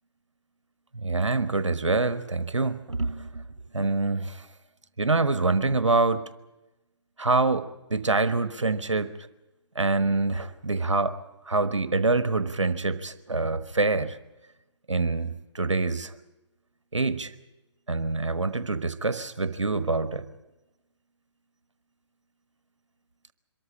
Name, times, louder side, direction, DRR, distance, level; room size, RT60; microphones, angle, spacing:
voice 1, 0.9-3.4 3.7-4.4 5.0-6.2 7.2-9.1 9.7-11.2 11.5-14.2 14.9-16.1 16.9-17.3 17.9-20.2, right 3 dB, 90° right, 13 dB, 1.2 m, -25 dB
24.0 x 14.0 x 9.9 m, 0.99 s
figure-of-eight pair, 140°, 15 cm